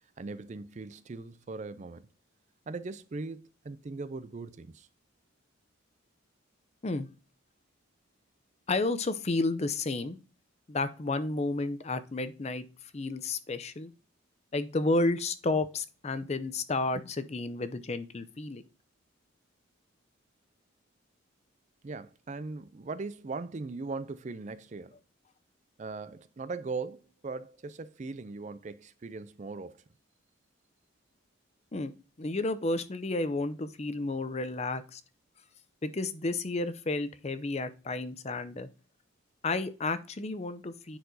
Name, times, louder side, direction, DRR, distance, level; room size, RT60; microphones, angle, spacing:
voice 1, 0.2-2.1 2.7-4.9 21.8-25.0 25.8-29.8, right 3 dB, 35° right, 0.4 m, -39 dB
voice 2, 8.7-10.2 10.7-12.6 12.9-13.9 14.5-18.6 31.7-31.9 32.2-35.0 35.8-38.7 39.4-41.0, left 2 dB, 30° left, 0.5 m, -31 dB
10.0 x 4.6 x 2.7 m
head